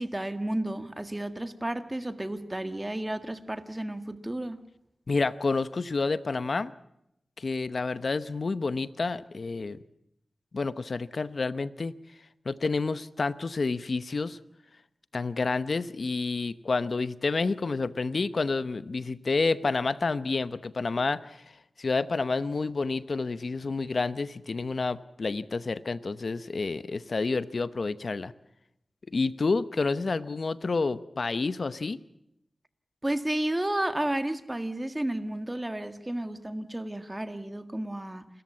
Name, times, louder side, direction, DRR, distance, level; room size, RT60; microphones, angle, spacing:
voice 1, 0.0-4.6 33.0-38.3, right 1 dB, 20° right, 1.7 m, -32 dB
voice 2, 5.1-6.7 7.4-9.8 10.5-11.9 12.5-14.4 15.1-21.4 21.8-28.3 29.1-32.0, left 3 dB, 65° left, 0.8 m, -29 dB
29.0 x 14.0 x 8.6 m
cardioid pair, 50°, 0 cm